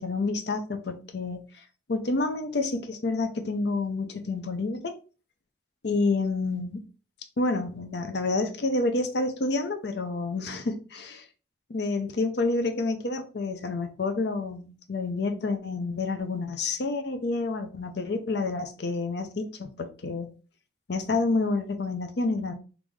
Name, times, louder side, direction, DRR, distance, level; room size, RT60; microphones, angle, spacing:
voice 1, 0.0-1.4 1.9-4.9 5.8-6.8 7.4-11.3 11.7-20.3 20.9-22.5, left 3 dB, 60° left, 0.5 m, -29 dB
3.6 x 2.5 x 3.1 m
head